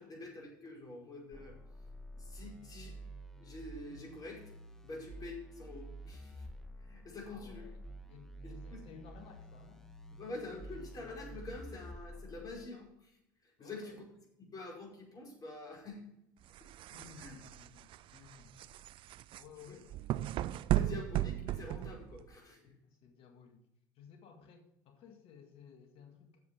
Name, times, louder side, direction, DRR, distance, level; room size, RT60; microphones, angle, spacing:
voice 1, 0.0-1.5 2.1-3.1 3.4-4.4 4.8-6.4 6.8-7.6 8.4-8.8 10.2-14.0 14.5-16.0 16.6-16.7 17.2-17.4 19.7-19.8 20.7-22.7, left 2 dB, 35° left, -1 dB, 5.0 m, -47 dB
sound 1, 1.3-12.7, right 1 dB, 5° left, 1.3 m, -50 dB
voice 2, 7.2-10.2 13.6-14.0 16.9-18.6 19.3-20.0 20.9-21.1 22.6-23.7 24.0-26.4, left 6 dB, 55° left, 5 dB, 1.9 m, -56 dB
sound 2, 16.5-22.4, right 14 dB, 50° right, 0.4 m, -36 dB
7.7 x 7.5 x 7.0 m, 0.78 s
hypercardioid pair, 75°, 11 cm